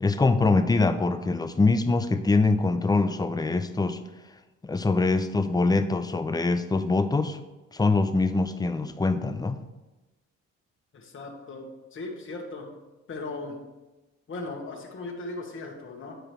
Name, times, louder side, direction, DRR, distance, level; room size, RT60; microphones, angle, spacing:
voice 1, 0.0-4.0 4.6-7.4 7.7-9.6, left 3 dB, 15° left, 10 dB, 0.5 m, -24 dB
voice 2, 10.9-12.7 13.1-13.6 14.3-16.2, left 2 dB, 40° left, 0 dB, 1.3 m, -37 dB
9.1 x 4.9 x 3.2 m, 1.1 s
cardioid pair, 90°, 30 cm